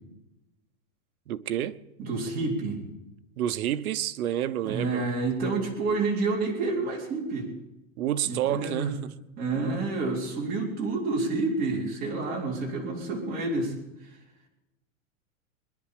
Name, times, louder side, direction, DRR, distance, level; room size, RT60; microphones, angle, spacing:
voice 1, 1.3-1.8 3.4-5.0 8.0-9.1, right 11 dB, 85° right, 1.0 m, -29 dB
voice 2, 2.0-2.8 4.6-7.5 8.3-8.9 9.4-13.7, right 3 dB, 20° right, 4.0 m, -29 dB
22.5 x 11.0 x 5.0 m
supercardioid pair, 165°, 42 cm